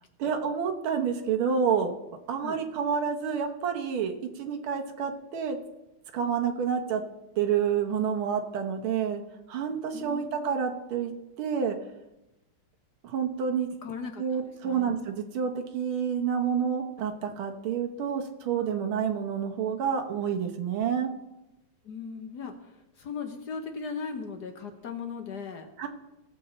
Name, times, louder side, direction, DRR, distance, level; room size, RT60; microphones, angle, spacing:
voice 1, 0.2-1.9 2.3-5.6 6.1-7.0 7.4-9.2 9.5-11.1 11.4-11.8 13.0-13.7 14.2-21.1 25.8-25.9, right 7 dB, 75° right, 3 dB, 1.9 m, -28 dB
voice 2, 9.9-10.5 13.8-15.0 21.8-25.7, left 5 dB, 55° left, 5 dB, 1.4 m, -38 dB
18.0 x 6.9 x 4.3 m, 0.96 s
omnidirectional pair, 2.4 m